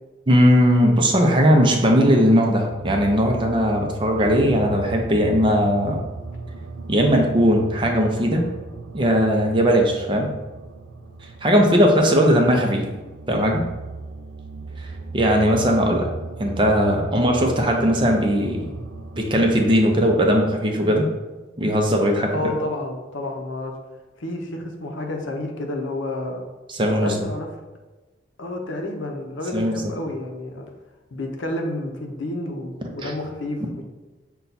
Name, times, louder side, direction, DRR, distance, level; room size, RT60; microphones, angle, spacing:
voice 1, 0.3-6.0 6.9-8.5 8.9-10.3 11.4-12.8 13.3-13.6 14.8-16.1 16.4-18.7 19.2-21.1 21.6-22.3 26.7-27.1 29.5-29.7 32.8-33.1, equal, 25° right, 1 dB, 0.5 m, -18 dB
sound 1, 2.7-20.5, right 3 dB, 80° right, 0.5 m, -37 dB
voice 2, 22.3-23.7 24.2-26.4 27.0-27.5 28.4-30.6 31.1-33.8, left 1 dB, 80° left, 2 dB, 0.7 m, -30 dB
5.6 x 2.3 x 4.0 m, 1.2 s
head